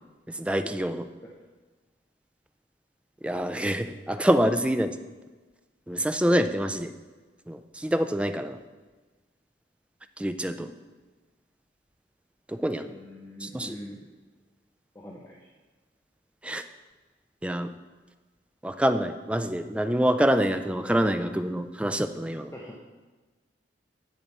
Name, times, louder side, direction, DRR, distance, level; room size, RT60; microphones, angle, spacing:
voice 1, 0.4-1.1 3.2-4.9 5.9-6.9 7.5-8.6 10.2-10.7 12.5-12.9 13.4-13.7 16.4-16.6 17.4-17.7 18.6-22.5, equal, 5° right, 9 dB, 0.4 m, -26 dB
voice 2, 12.9-14.0 14.9-15.5 22.5-22.8, left 1 dB, 15° left, -3 dB, 0.8 m, -43 dB
10.0 x 7.4 x 4.2 m, 1.3 s
head